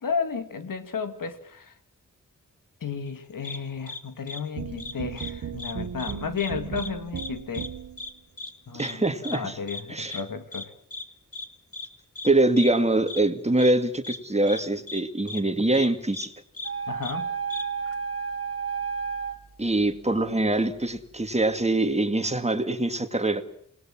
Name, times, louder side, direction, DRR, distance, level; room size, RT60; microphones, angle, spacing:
voice 1, 0.0-1.7 2.8-7.7 8.7-10.7 16.9-17.3, left 6 dB, 85° left, 9 dB, 2.5 m, -33 dB
sound 1, 3.4-3.6 3.9-4.0 4.3-4.4 4.8-5.3 5.6-5.7 6.0-6.5 6.8-6.9 7.2-7.3 7.5-7.7 8.0-8.1 8.4-8.5 8.8-8.9 9.2-9.4 9.7-9.8 10.1-10.2 10.5-10.6 10.9-11.0 11.3-11.5 11.7-11.9 12.2-12.3 12.6-12.7 13.1-13.2 13.6-13.7 14.0-14.2 14.5-14.6 14.9-15.0 15.3-15.4 15.7-15.9 16.1-16.3 16.5-16.7 17.0-17.1 17.5-17.6, left 3 dB, 45° left, 2.8 m, -36 dB
sound 2, 4.6-8.1, right 7 dB, 65° right, 1.1 m, -36 dB
voice 2, 8.7-9.6 9.9-10.2 12.2-16.3 19.6-23.4, right 2 dB, 20° right, 9 dB, 2.3 m, -24 dB
Revheim brass lure, 16.6-19.4, right 6 dB, 45° right, 2.8 m, -31 dB
27.5 x 20.0 x 7.5 m, 0.65 s
wide cardioid pair, 80°, 32 cm